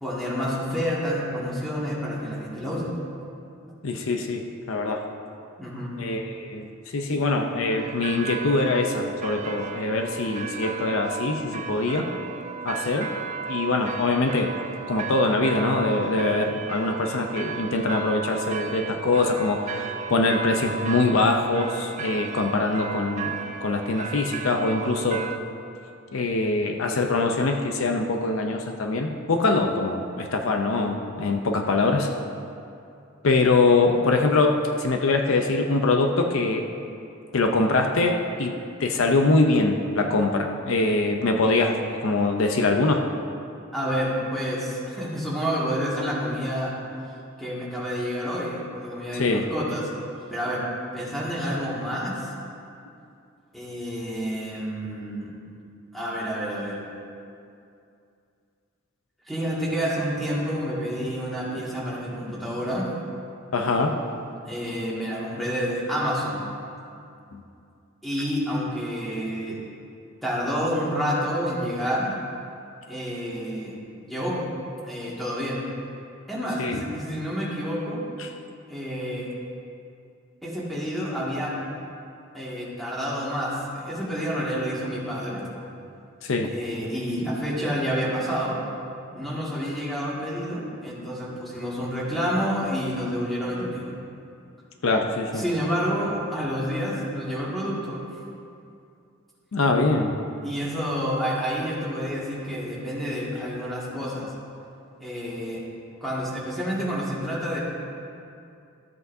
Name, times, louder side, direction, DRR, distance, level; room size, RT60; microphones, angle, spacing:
voice 1, 0.0-2.9 5.6-5.9 7.1-7.2 43.7-46.7 47.4-49.8 50.3-50.6 50.9-52.3 53.5-55.3 55.9-56.8 59.3-62.9 64.4-66.5 68.0-69.6 70.2-72.2 72.9-73.8 74.0-74.4 74.8-75.6 76.3-76.6 76.9-78.0 78.7-79.3 80.4-81.5 82.3-85.5 86.5-88.6 89.1-93.9 95.3-98.0 100.4-104.3 105.0-105.6 106.0-107.6, equal, ahead, -7 dB, 2.0 m, -29 dB
voice 2, 3.8-5.1 6.0-12.1 12.6-13.1 13.5-14.5 14.9-25.2 26.1-32.1 33.2-36.6 37.3-38.5 38.8-43.0 49.1-49.4 63.5-63.9 67.3-67.4 76.6-76.8 78.2-78.3 86.2-86.5 94.8-95.4 99.5-100.1, left 3 dB, 70° left, 4 dB, 0.6 m, -23 dB
sound 1, 7.7-25.4, right 6 dB, 35° right, 0.4 m, -34 dB
13.5 x 7.9 x 2.7 m, 2.5 s
head